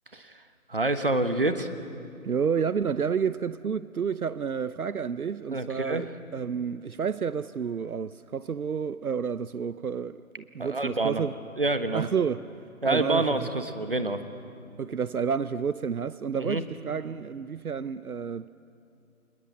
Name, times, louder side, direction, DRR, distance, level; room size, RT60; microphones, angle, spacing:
voice 1, 0.7-1.7 5.5-6.0 10.6-11.2 11.6-12.0 12.8-14.2 16.4-16.6, right 2 dB, 40° right, 1.3 m, -27 dB
voice 2, 2.2-11.3 11.9-12.5 12.8-13.5 14.8-18.5, right 6 dB, 75° right, 0.7 m, -30 dB
29.5 x 21.5 x 8.9 m
figure-of-eight pair, 180°, 44 cm